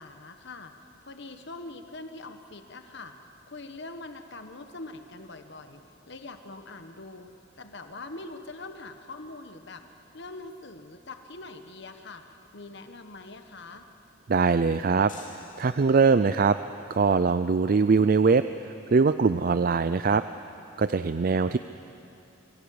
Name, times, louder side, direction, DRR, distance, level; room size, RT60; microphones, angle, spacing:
voice 1, 0.0-5.8 6.1-7.3 7.6-9.8 10.1-12.2 12.5-13.9 21.3-21.6, left 2 dB, 60° left, 7 dB, 1.3 m, -43 dB
voice 2, 14.3-16.6 16.9-20.2 20.8-21.6, right 4 dB, 45° right, 12 dB, 0.4 m, -22 dB
sound 1, 15.1-16.4, left 5 dB, 45° left, 2.7 m, -50 dB
25.0 x 17.0 x 8.6 m, 2.8 s
head